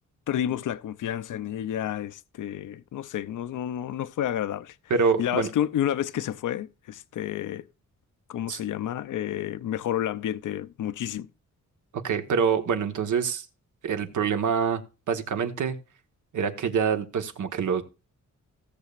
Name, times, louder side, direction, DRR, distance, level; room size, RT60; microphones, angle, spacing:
voice 1, 0.3-4.7 5.2-7.6 8.3-11.3, left 11 dB, 75° left, 0.6 m, -30 dB
voice 2, 4.9-5.5 8.5-8.6 11.9-13.4 13.8-14.8 15.1-15.8 16.3-17.8, right 6 dB, 70° right, 1.5 m, -25 dB
17.0 x 6.9 x 2.5 m
wide cardioid pair, 175°, 31 cm